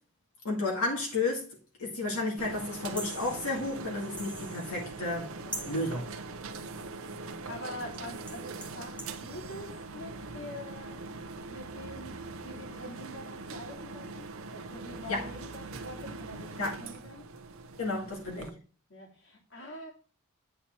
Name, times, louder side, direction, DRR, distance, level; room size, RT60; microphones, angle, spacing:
voice 1, 0.4-1.4 1.8-5.3 5.6-6.1 15.1-15.3 16.6-16.7 17.8-18.5, left 2 dB, 75° left, 2.0 m, -32 dB
sound 1, 2.4-18.5, right 3 dB, 70° right, 0.7 m, -42 dB
sound 2, 2.6-5.3 5.5-6.1 7.9-8.0 8.3-9.2, right 1 dB, 5° left, 1.1 m, -44 dB
voice 2, 5.4-5.9 7.5-11.0 11.5-17.3 18.3-18.5 18.9-19.9, left 1 dB, 55° left, 2.4 m, -45 dB
8.8 x 4.3 x 4.4 m
head